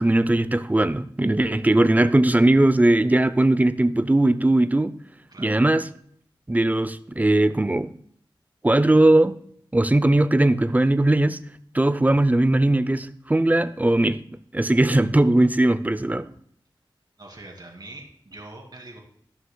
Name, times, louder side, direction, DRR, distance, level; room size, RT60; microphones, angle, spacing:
voice 1, 0.0-4.9 5.4-5.9 6.5-7.9 8.6-9.3 9.7-11.4 11.7-14.2 14.5-16.3, right 1 dB, 20° right, 0.6 m, -19 dB
voice 2, 5.3-5.6 17.2-19.0, right 2 dB, 50° right, 2.6 m, -43 dB
14.5 x 6.4 x 2.3 m
wide cardioid pair, 50°, 9 cm